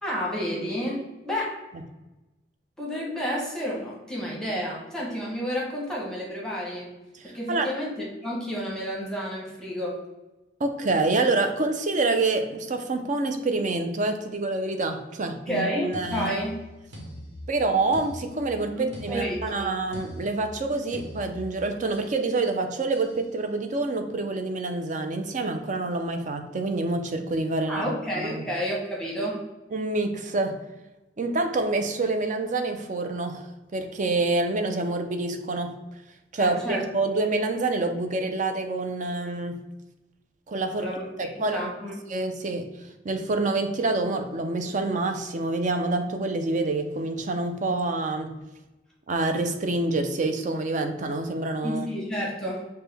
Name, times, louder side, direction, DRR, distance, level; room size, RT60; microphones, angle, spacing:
voice 1, 0.0-1.6 2.8-6.9 7.2-10.0 15.5-16.5 18.8-19.7 27.7-29.4 36.4-36.8 40.8-41.0 41.3-41.9 51.6-52.6, equal, 5° left, -4 dB, 1.0 m, -30 dB
voice 2, 7.2-7.7 10.6-16.3 17.5-27.8 28.1-28.5 29.7-30.6 31.2-33.4 33.7-35.7 36.3-39.6 40.5-40.9 41.2-41.7 42.1-42.7 43.0-48.3 49.1-51.9, right 2 dB, 45° right, 6 dB, 0.5 m, -27 dB
sound 1, 15.9-22.2 22.9-23.2, equal, 75° right, 1.2 m, -42 dB
6.1 x 2.2 x 3.4 m, 1.0 s
head